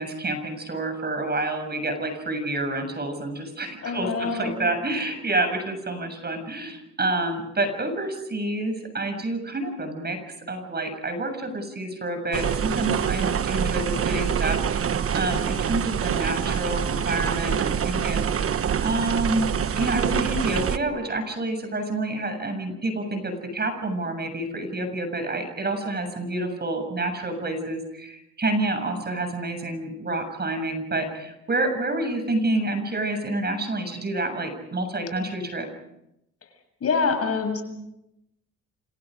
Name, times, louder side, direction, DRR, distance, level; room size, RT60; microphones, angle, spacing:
voice 1, 0.0-10.2 10.5-19.5 19.7-35.7, right 2 dB, 35° right, 6 dB, 7.1 m, -28 dB
voice 2, 3.8-4.5 36.8-37.6, left 4 dB, 50° left, 5 dB, 7.4 m, -25 dB
sound 1, 12.3-20.8, right 8 dB, 50° right, 1.2 m, -25 dB
29.5 x 26.5 x 5.2 m, 0.83 s
cardioid pair, 90°, 30 cm